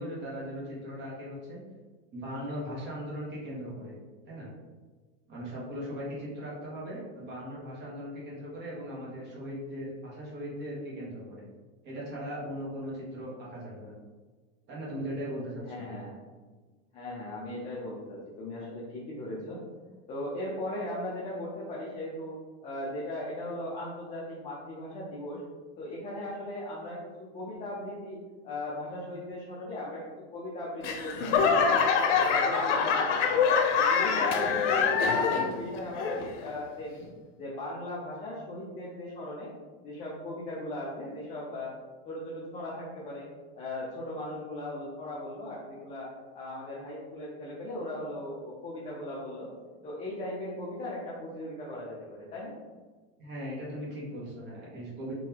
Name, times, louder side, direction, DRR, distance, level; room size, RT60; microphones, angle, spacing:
voice 1, 0.0-1.6 2.1-3.9 4.3-4.5 5.3-11.4 11.8-13.9 14.7-15.8 53.2-55.1, equal, 30° right, -5 dB, 1.3 m, -38 dB
voice 2, 15.7-16.1 16.9-19.6 20.1-22.4 22.6-25.4 25.8-30.0 30.3-31.9 32.2-37.0 37.4-39.5 39.8-41.7 42.1-43.3 43.5-46.1 46.3-49.5 49.8-52.5, left 1 dB, 20° left, -6 dB, 0.5 m, -38 dB
Laughter / Clapping / Crowd, 30.8-35.6 35.9-36.5 37.0-37.1, left 5 dB, 90° left, 0.6 m, -25 dB
3.8 x 2.7 x 2.9 m, 1.4 s
supercardioid pair, 145°, 36 cm